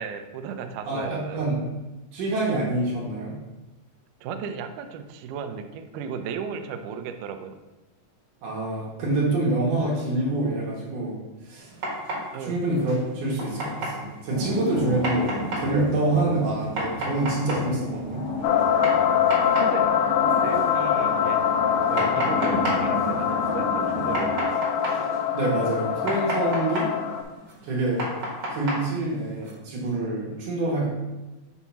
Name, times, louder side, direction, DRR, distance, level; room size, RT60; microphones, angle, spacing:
voice 1, 0.0-1.4 4.2-7.6 12.3-12.6 19.6-21.4 22.2-24.6, right 6 dB, 85° right, 7 dB, 1.8 m, -35 dB
voice 2, 0.9-1.6 2.1-3.3 8.4-11.2 11.4-11.7 12.4-18.2 21.9-22.1 25.3-26.9 27.6-28.1 28.5-30.9, right 2 dB, 65° right, -4 dB, 2.5 m, -26 dB
sound 1, 11.6-29.5, right 1 dB, 45° right, 2.0 m, -34 dB
sound 2, 14.3-24.4, left 1 dB, 60° left, 1.7 m, -33 dB
sound 3, 18.4-27.2, left 9 dB, 85° left, 1.9 m, -24 dB
7.1 x 2.7 x 5.7 m, 1.1 s
omnidirectional pair, 4.3 m